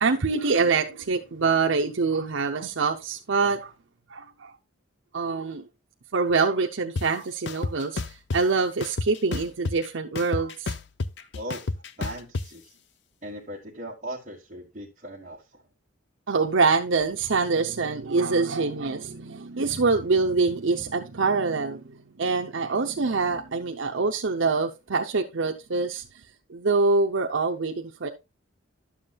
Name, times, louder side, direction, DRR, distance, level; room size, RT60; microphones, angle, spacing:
voice 1, 0.0-3.7 4.1-4.5 5.1-5.7 6.1-10.7 16.3-21.8 22.2-26.2 26.5-28.1, right 4 dB, 70° right, 0.7 m, -25 dB
sound 1, 7.0-7.1 7.5-8.4 8.8-9.9 10.2-12.4, left 3 dB, 55° left, 0.5 m, -30 dB
voice 2, 12.0-12.8 13.2-15.6, equal, 35° right, 1.5 m, -38 dB
12.0 x 7.3 x 2.3 m
head